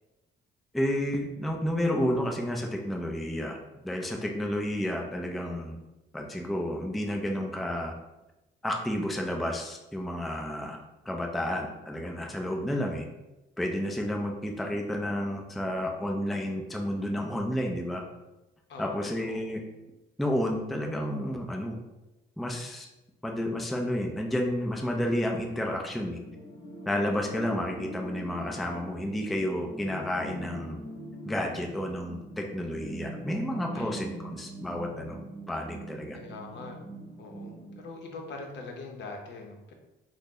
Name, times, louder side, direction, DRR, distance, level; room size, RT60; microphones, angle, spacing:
voice 1, 0.7-3.6 3.8-5.8 6.1-7.9 8.6-10.8 11.1-13.0 13.6-18.0 18.8-19.6 20.2-21.8 22.4-22.9 23.2-26.2 26.9-30.8 31.3-35.2 35.5-36.2, equal, ahead, 1 dB, 0.3 m, -31 dB
voice 2, 18.7-19.4 33.7-34.0 36.1-36.8 37.2-39.7, left 3 dB, 65° left, 2 dB, 0.6 m, -42 dB
sound 1, 25.9-37.9, right 1 dB, 25° left, 0.8 m, -42 dB
2.8 x 2.0 x 3.6 m, 0.98 s
cardioid pair, 90°, 20 cm